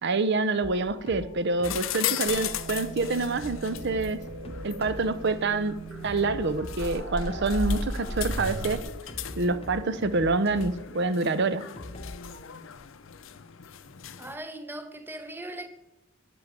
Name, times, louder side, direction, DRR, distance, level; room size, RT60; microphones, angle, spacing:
voice 1, 0.0-4.2 4.6-5.8 6.0-8.8 9.4-11.6, right 3 dB, 55° right, 0.7 m, -27 dB
sound 1, 0.6-12.4, left 1 dB, 30° left, 0.9 m, -44 dB
sound 2, 1.6-14.4, left 11 dB, 65° left, 0.5 m, -38 dB
sound 3, 2.3-8.8, right 1 dB, 75° right, 1.2 m, -36 dB
voice 2, 14.2-15.7, right 1 dB, 10° right, 0.8 m, -39 dB
10.5 x 6.1 x 5.2 m
head